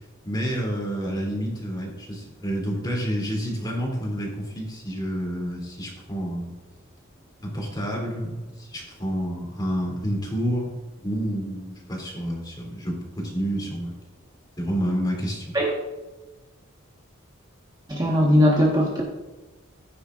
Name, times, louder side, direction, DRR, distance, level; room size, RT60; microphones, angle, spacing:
voice 1, 0.2-6.5 7.4-10.7 11.0-13.9 14.6-15.5, equal, 20° left, -2 dB, 3.1 m, -29 dB
voice 2, 17.9-19.0, equal, 20° right, -3 dB, 1.4 m, -19 dB
15.0 x 9.5 x 2.5 m, 1.2 s
head